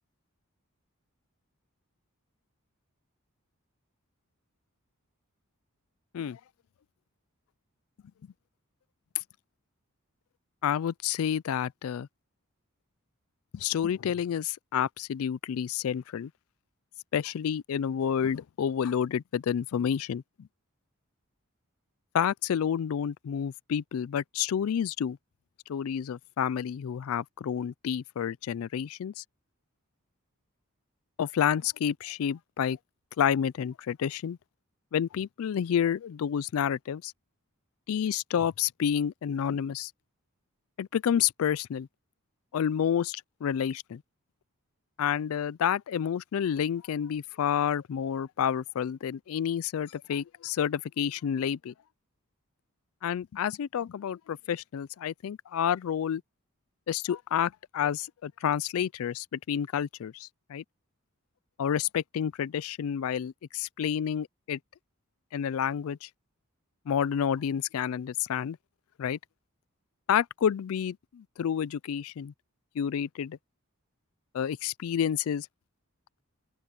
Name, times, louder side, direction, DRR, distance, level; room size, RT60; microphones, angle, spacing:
voice 1, 10.6-12.1 13.5-16.3 17.1-20.5 22.1-25.2 25.7-29.2 31.2-32.8 33.2-34.4 34.9-37.1 37.9-39.9 40.8-41.9 42.5-44.0 45.0-51.7 53.0-56.2 56.9-60.6 61.6-64.6 65.3-66.1 66.9-68.6 69.0-69.2 70.1-72.3 72.8-73.4 74.3-75.5, left 8 dB, 70° left, 0.3 m, -29 dB
open air
head